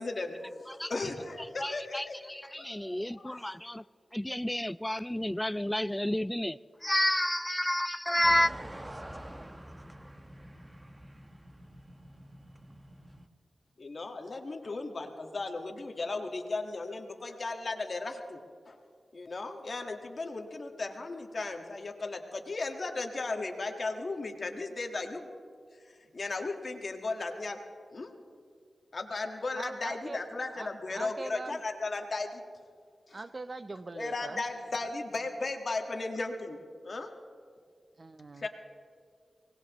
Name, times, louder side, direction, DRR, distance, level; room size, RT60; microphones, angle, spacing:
voice 1, 0.0-2.7 3.0-3.4 13.8-18.4 18.7-18.8 19.1-25.3 26.1-27.6 27.9-28.1 28.9-32.4 33.1-33.2 33.9-36.6 36.8-37.1 38.4-38.5, left 3 dB, 60° left, 1.7 m, -36 dB
voice 2, 1.6-3.8 4.1-8.5, left 1 dB, 10° left, 0.3 m, -30 dB
sound 1, 8.2-13.3, right 1 dB, 20° right, 1.1 m, -46 dB
voice 3, 29.5-30.2 30.5-31.6 33.1-34.4 34.8-34.9 38.0-38.5, right 3 dB, 45° right, 0.7 m, -42 dB
24.5 x 19.0 x 3.1 m
cardioid pair, 50°, 0 cm